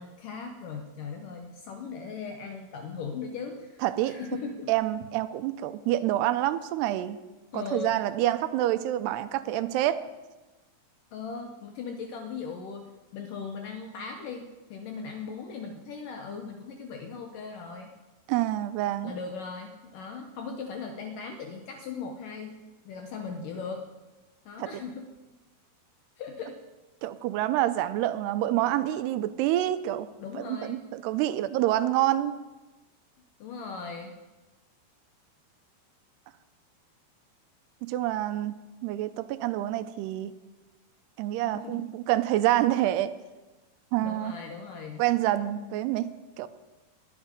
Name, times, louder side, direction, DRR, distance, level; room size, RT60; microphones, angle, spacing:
voice 1, 0.0-4.7 7.5-7.9 11.1-12.8 13.1-14.4 14.7-17.9 19.0-22.6 22.9-23.8 24.5-25.1 26.2-26.6 30.2-30.8 33.4-34.1 41.5-41.9 44.0-45.0, left 5 dB, 70° left, 4 dB, 2.1 m, -38 dB
voice 2, 3.8-4.1 4.7-7.2 7.5-10.1 18.3-19.1 24.6-24.8 27.0-30.1 30.3-32.3 37.8-38.5 38.8-40.3 41.2-43.2 43.9-44.3 45.0-46.5, right 14 dB, 85° right, 12 dB, 2.6 m, -27 dB
20.5 x 8.6 x 5.2 m, 1.1 s
omnidirectional pair, 4.8 m